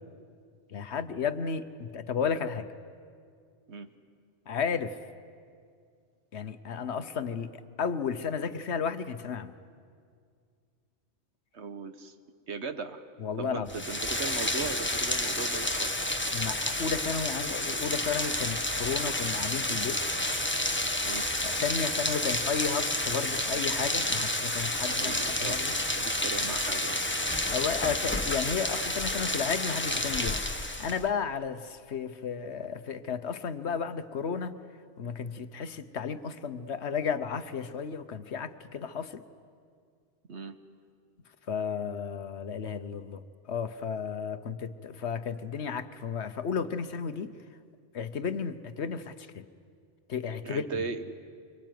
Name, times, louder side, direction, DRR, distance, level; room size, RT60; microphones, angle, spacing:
voice 1, 0.7-2.7 4.5-5.0 6.3-9.5 13.2-13.7 16.3-20.0 21.4-25.7 27.5-34.6 35.0-39.2 41.5-47.3 47.9-49.4 50.1-50.7, left 6 dB, 70° left, 11 dB, 1.2 m, -33 dB
voice 2, 11.5-12.1 12.5-13.1 13.4-16.0 21.0-21.3 25.0-25.6 25.9-27.0 40.3-40.6 50.4-51.2, right 4 dB, 70° right, 9 dB, 1.5 m, -38 dB
Rain, 13.7-31.1, left 1 dB, 10° left, 1.1 m, -30 dB
24.5 x 24.5 x 9.3 m, 2.2 s
omnidirectional pair, 1.2 m